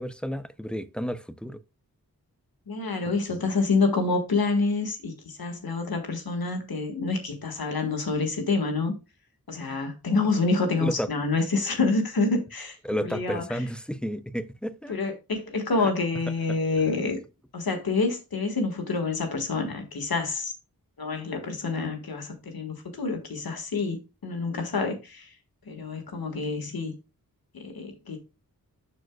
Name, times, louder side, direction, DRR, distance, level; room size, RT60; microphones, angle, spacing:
voice 1, 0.0-1.6 3.1-3.5 10.8-11.1 12.8-15.0 15.8-15.9 16.5-16.6, equal, 5° left, 0.6 m, -32 dB
voice 2, 2.7-8.9 9.5-13.4 14.9-17.2 17.5-20.5 21.0-25.3 25.7-26.9 27.5-28.2, left 3 dB, 85° left, 1.8 m, -27 dB
12.5 x 4.5 x 2.3 m
wide cardioid pair, 65°, 35 cm